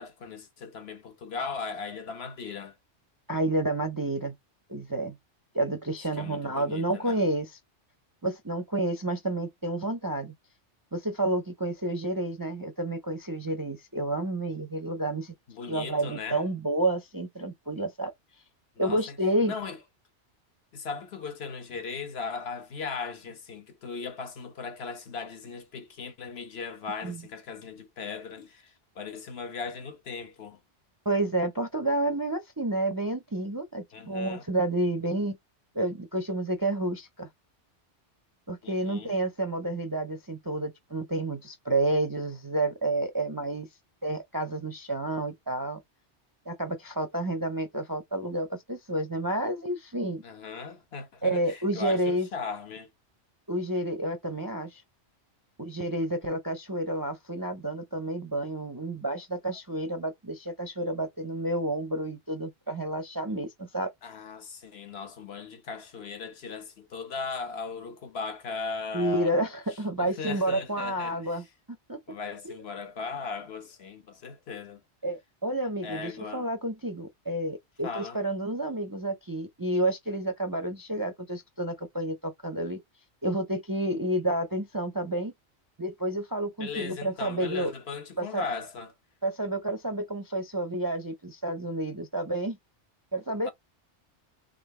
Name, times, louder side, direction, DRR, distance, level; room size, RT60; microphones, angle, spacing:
voice 1, 0.0-2.8 6.2-7.2 15.5-16.4 18.8-19.2 19.4-19.8 20.7-30.6 33.9-34.4 38.6-39.1 50.2-52.9 64.0-69.4 70.0-71.4 72.1-74.8 75.8-76.5 77.8-78.2 86.6-88.9 93.4-93.5, left 5 dB, 60° left, 1.1 m, -38 dB
voice 2, 3.3-4.3 4.7-5.2 5.5-7.6 8.2-10.3 10.9-15.3 15.7-18.1 18.8-19.5 27.0-27.2 31.0-35.4 35.7-37.3 38.5-43.7 44.0-45.8 46.5-50.2 51.2-52.3 53.5-54.8 55.6-63.9 68.9-71.4 71.9-72.0 72.4-72.6 75.0-82.8 83.2-85.3 85.8-87.7 88.2-88.4 89.2-92.6 93.1-93.5, right 1 dB, 25° right, 0.5 m, -30 dB
3.8 x 3.3 x 3.2 m
omnidirectional pair, 1.2 m